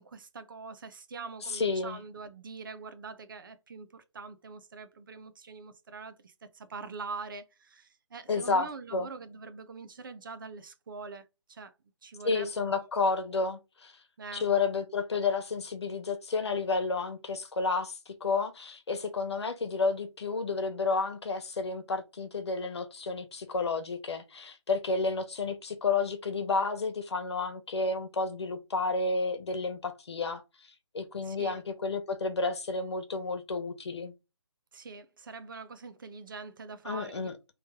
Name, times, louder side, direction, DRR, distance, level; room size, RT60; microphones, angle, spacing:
voice 1, 0.0-11.7 12.0-12.9 14.2-14.5 31.2-31.6 34.7-37.3, right 4 dB, 40° right, 0.7 m, -44 dB
voice 2, 1.5-2.0 8.3-9.1 12.2-13.9 14.3-30.4 30.9-34.1 36.8-37.3, left 4 dB, 60° left, 1.1 m, -31 dB
4.2 x 3.2 x 3.6 m
hypercardioid pair, 160°, 16 cm